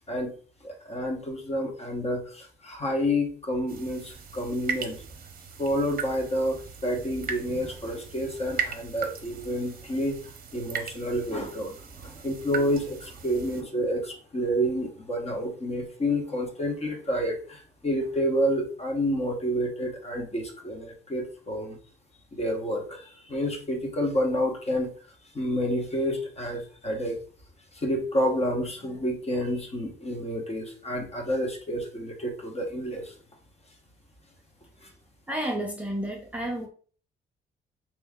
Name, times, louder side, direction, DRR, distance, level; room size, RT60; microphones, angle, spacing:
voice 1, 0.6-5.0 5.6-10.2 10.5-21.8 22.3-24.9 25.3-27.2 27.7-33.1, equal, 30° left, 2 dB, 1.2 m, -29 dB
sound 1, 3.7-13.6, right 6 dB, 45° right, 0.8 m, -38 dB
voice 2, 35.3-36.7, right 1 dB, 5° right, 0 dB, 0.7 m, -31 dB
3.5 x 3.0 x 3.6 m, 0.43 s
cardioid pair, 90°, 20 cm